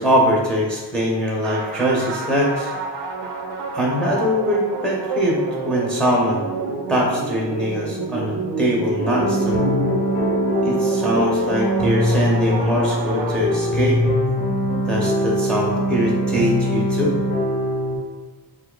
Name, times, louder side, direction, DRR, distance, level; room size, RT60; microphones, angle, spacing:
voice 1, 0.0-2.7 3.7-6.4 6.9-9.6 10.6-14.0 14.9-17.1, equal, ahead, -4 dB, 0.5 m, -22 dB
sound 1, 1.4-14.0, right 4 dB, 80° right, 0.5 m, -29 dB
sound 2, 9.0-18.0, equal, 50° left, 0.8 m, -22 dB
2.6 x 2.3 x 3.7 m, 1.3 s
wide cardioid pair, 130°, 41 cm